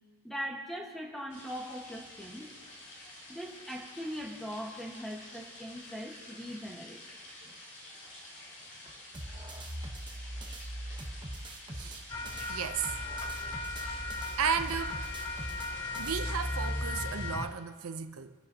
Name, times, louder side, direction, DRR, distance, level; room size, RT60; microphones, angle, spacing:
voice 1, 0.2-2.5 3.3-7.0 7.4-7.5, equal, ahead, -1 dB, 1.5 m, -40 dB
sound 1, 1.3-17.3, left 1 dB, 55° left, 4.7 m, -49 dB
sound 2, 9.1-12.5 12.8-16.2, right 1 dB, 20° right, 1.0 m, -42 dB
sound 3, 12.1-17.5, left 2 dB, 15° left, 0.4 m, -36 dB
voice 2, 12.5-12.9 13.8-14.1 14.4-15.1 16.0-18.3, right 7 dB, 80° right, 9 dB, 0.6 m, -34 dB
28.0 x 10.0 x 2.9 m, 1.5 s
head